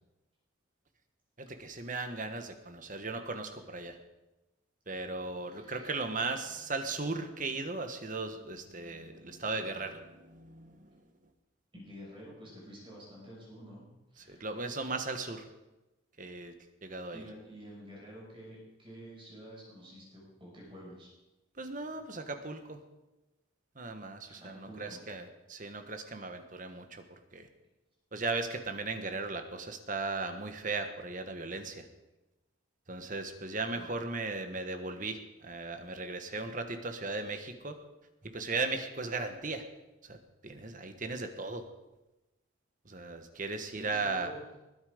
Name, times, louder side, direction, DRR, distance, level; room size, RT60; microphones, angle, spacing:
voice 1, 1.4-4.0 4.9-10.9 14.3-15.5 16.2-16.5 16.8-17.2 21.6-22.8 23.8-27.0 27.3-27.5 28.1-31.9 32.9-37.8 38.3-39.6 40.1-40.2 40.4-41.7 42.9-44.3, right 3 dB, 40° right, 7 dB, 1.3 m, -37 dB
voice 2, 5.5-6.0 11.7-13.8 14.1-14.5 17.1-21.1 24.3-25.0 25.6-25.8 33.7-33.9 43.7-44.4, equal, 25° right, -4 dB, 6.2 m, -49 dB
20.5 x 9.9 x 5.1 m, 1.0 s
head